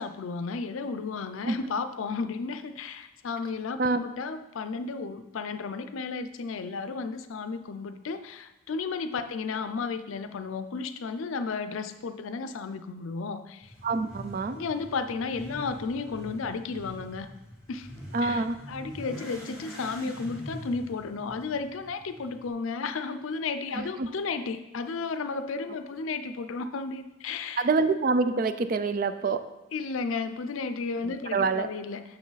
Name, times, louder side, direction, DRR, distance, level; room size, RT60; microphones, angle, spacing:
voice 1, 0.0-13.7 14.5-17.3 17.7-17.9 18.2-27.7 29.7-32.0, left 4 dB, 80° left, 10 dB, 0.5 m, -33 dB
Motorcycle / Accelerating revving vroom, 13.6-22.5, equal, 5° right, 1.9 m, -44 dB
voice 2, 13.8-14.6 18.1-18.6 23.7-24.1 27.6-29.4 31.0-31.7, right 4 dB, 45° right, 11 dB, 0.4 m, -26 dB
6.4 x 6.1 x 4.0 m, 0.97 s
head